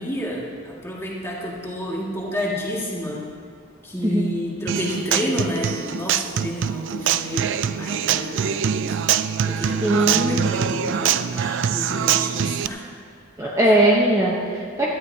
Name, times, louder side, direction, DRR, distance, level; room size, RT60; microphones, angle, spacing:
voice 1, 0.0-3.2 3.8-7.5 7.8-9.0 9.4-12.8 13.6-13.8, left 1 dB, 15° left, -4 dB, 2.1 m, -30 dB
Human voice / Acoustic guitar, 4.7-12.7, right 8 dB, 60° right, 0.4 m, -24 dB
voice 2, 9.8-10.5 13.4-14.9, right 1 dB, 15° right, -4 dB, 1.0 m, -19 dB
17.5 x 13.0 x 2.8 m, 2.2 s
head